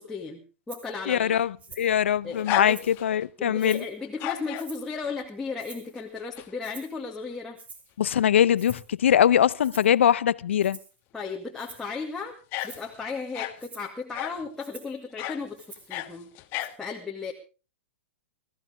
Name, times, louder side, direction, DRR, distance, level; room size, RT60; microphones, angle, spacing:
voice 1, 0.0-1.4 2.2-2.8 3.4-7.6 11.1-12.4 12.6-16.3 16.8-17.3, left 4 dB, 5° left, 2.1 m, -35 dB
Rattle (instrument), 0.7-0.9 1.6-2.0 2.4-3.0 3.6-4.0 4.6-5.0 5.6-6.0 6.6-7.0 7.6-7.9 8.6-8.9 9.6-10.0 10.6-11.0 11.6-11.9 12.6-12.9 13.6-13.9 14.6-15.0 15.6-16.0 16.6-16.7, right 4 dB, 20° right, 3.0 m, -47 dB
voice 2, 1.1-3.8 8.0-10.8, left 9 dB, 75° left, 0.7 m, -22 dB
sound 1, 1.4-3.3 4.0-4.7 6.0-6.5 6.9-7.0 8.4-8.5 8.7-8.8 11.7-11.9 12.5-13.6 14.1-14.5 15.2-15.4 15.7-16.7, left 15 dB, 35° left, 1.5 m, -34 dB
21.5 x 14.0 x 3.5 m
hypercardioid pair, 130°, 7 cm